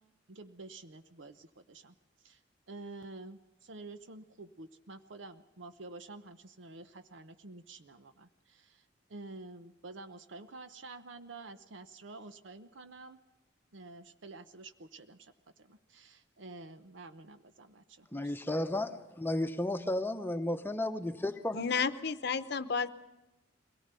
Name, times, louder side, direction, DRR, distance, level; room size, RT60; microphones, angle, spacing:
voice 1, 0.3-2.4 2.7-13.2 13.7-15.3 15.6-18.4, right 3 dB, 75° right, 10 dB, 0.8 m, -49 dB
voice 2, 18.1-21.6, left 1 dB, 10° left, 8 dB, 0.9 m, -33 dB
voice 3, 21.5-22.9, left 5 dB, 60° left, 13 dB, 0.8 m, -32 dB
22.0 x 18.0 x 6.8 m, 1.0 s
head